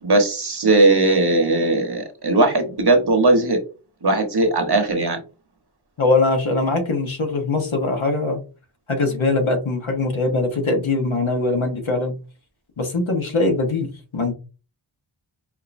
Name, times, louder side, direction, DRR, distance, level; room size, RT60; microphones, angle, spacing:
voice 1, 0.0-3.6 4.0-5.2, right 2 dB, 55° right, 4 dB, 1.1 m, -18 dB
voice 2, 6.0-8.4 8.9-12.1 12.8-13.9 14.1-14.3, left 3 dB, 80° left, 3 dB, 1.2 m, -21 dB
5.2 x 2.6 x 2.6 m, 0.33 s
wide cardioid pair, 65°, 48 cm